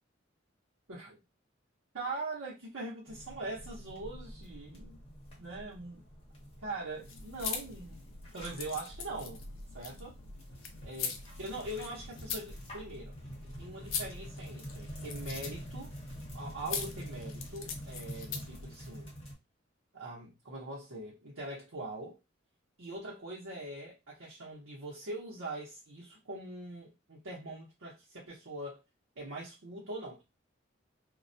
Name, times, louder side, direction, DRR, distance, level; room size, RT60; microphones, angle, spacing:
voice 1, 1.9-5.0 5.4-6.0 6.6-8.0 8.3-9.5 9.7-10.2 10.8-13.1 13.6-15.9 16.3-19.1 19.9-22.2 22.8-28.8 29.2-30.2, right 2 dB, 90° right, 0.8 m, -42 dB
sound 1, 3.1-19.3, equal, 30° left, 0.9 m, -47 dB
sound 2, 7.0-18.6, left 5 dB, 75° left, 0.5 m, -42 dB
2.3 x 2.1 x 2.6 m
head